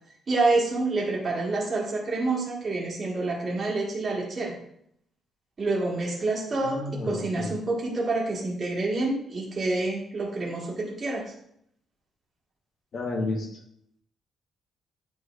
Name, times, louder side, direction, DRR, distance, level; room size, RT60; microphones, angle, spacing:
voice 1, 0.3-4.5 5.6-11.3, right 2 dB, 30° right, -4 dB, 1.8 m, -27 dB
voice 2, 6.6-7.5 12.9-13.5, left 2 dB, 45° left, 1 dB, 1.3 m, -31 dB
9.3 x 4.7 x 2.6 m, 0.71 s
cardioid pair, 160°, 0 cm